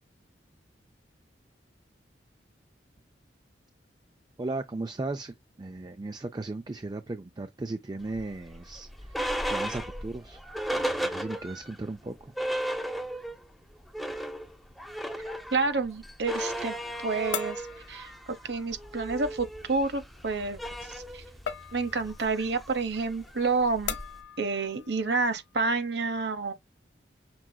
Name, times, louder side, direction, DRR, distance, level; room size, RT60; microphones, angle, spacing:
voice 1, 4.4-9.2 9.5-10.4 10.8-12.3, right 2 dB, 25° right, 0.4 m, -36 dB
sound 1, 8.1-11.8 12.1-12.2 12.4-13.4 13.8-24.2, equal, ahead, 0.7 m, -35 dB
sound 2, 15.0-25.8, left 7 dB, 85° left, 0.9 m, -43 dB
voice 2, 15.5-16.8 17.0-18.1 18.4-21.2 21.7-24.0 24.4-26.5, right 3 dB, 70° right, 0.9 m, -29 dB
6.0 x 3.7 x 2.2 m
head